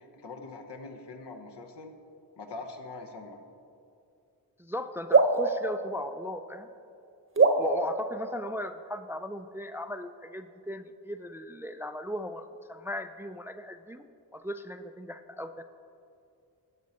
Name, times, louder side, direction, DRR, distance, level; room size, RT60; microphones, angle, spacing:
voice 1, 0.0-1.9 2.4-3.4, left 3 dB, 75° left, 4 dB, 1.2 m, -43 dB
voice 2, 4.6-6.7 7.4-14.0 14.3-15.6, left 1 dB, 5° right, 10 dB, 0.3 m, -37 dB
sound 1, 5.1-6.8 7.4-9.1, right 3 dB, 30° right, 0.9 m, -26 dB
11.0 x 7.4 x 4.1 m, 2.5 s
supercardioid pair, 50°, 42 cm